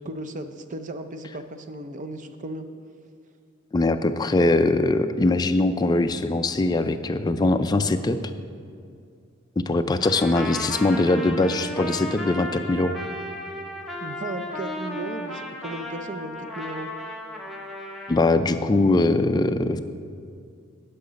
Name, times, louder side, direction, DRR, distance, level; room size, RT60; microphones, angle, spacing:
voice 1, 0.0-2.7 14.0-16.9, right 2 dB, 40° right, 8 dB, 0.5 m, -35 dB
voice 2, 3.7-8.2 9.6-13.0 18.1-19.8, left 2 dB, 20° left, 9 dB, 0.3 m, -21 dB
Trumpet, 10.0-18.2, left 1 dB, ahead, 0.8 m, -35 dB
10.5 x 5.8 x 5.1 m, 2.3 s
head